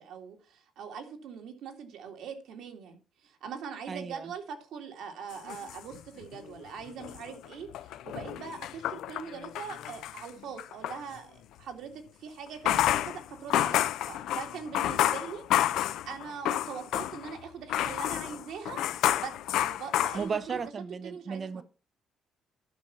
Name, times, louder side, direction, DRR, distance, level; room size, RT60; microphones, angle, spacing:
voice 1, 0.0-15.7 16.0-18.8 19.2-20.6 21.0-21.6, right 6 dB, 75° right, 2.2 m, -42 dB
voice 2, 3.9-4.3 20.1-21.6, right 5 dB, 35° right, 0.7 m, -35 dB
sound 1, 5.3-6.5 6.9-11.0 12.5-17.4 17.7-20.7, left 12 dB, 85° left, 0.6 m, -30 dB
11.0 x 5.9 x 5.6 m
cardioid pair, 125°, 0 cm